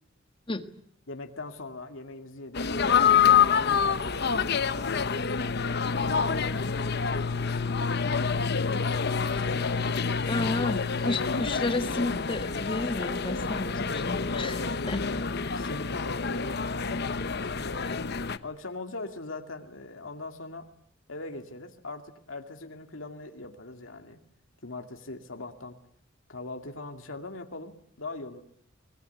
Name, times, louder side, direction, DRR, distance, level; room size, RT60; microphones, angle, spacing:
voice 1, 1.1-5.3 5.9-8.6 9.1-10.3 10.5-10.9 11.3-11.7 14.3-15.2 15.5-17.8 18.4-20.7 21.1-24.2 24.6-25.8 26.3-28.4, left 2 dB, 75° left, 5 dB, 2.3 m, -40 dB
sound 1, 2.5-18.4, left 6 dB, 55° left, 1.0 m, -27 dB
voice 2, 10.3-14.6 14.9-15.0, left 2 dB, 25° left, 9 dB, 1.6 m, -31 dB
25.0 x 21.0 x 9.3 m, 0.67 s
head